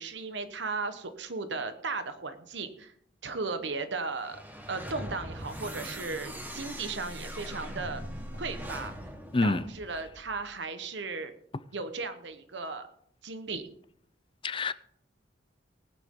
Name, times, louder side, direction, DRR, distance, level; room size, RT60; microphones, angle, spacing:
voice 1, 0.0-2.9 3.2-4.4 4.7-8.0 8.4-8.9 9.4-11.3 11.7-12.9 13.2-13.6, right 4 dB, 65° right, 1.2 m, -36 dB
sound 1, 4.1-10.4, equal, 10° right, 1.6 m, -41 dB
voice 2, 9.3-9.7 14.4-14.7, left 3 dB, 30° left, 0.5 m, -26 dB
19.5 x 9.6 x 3.8 m
head